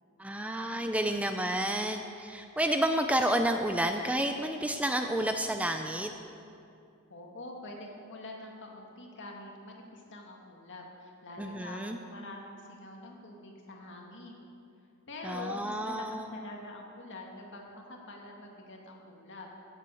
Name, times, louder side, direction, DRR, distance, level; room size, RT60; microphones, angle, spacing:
voice 1, 0.2-6.1 11.4-12.0 15.2-16.3, right 1 dB, 5° right, 5 dB, 0.5 m, -30 dB
voice 2, 7.1-14.4 15.1-19.5, left 2 dB, 60° left, 0 dB, 2.0 m, -45 dB
16.0 x 7.5 x 6.3 m, 2.5 s
head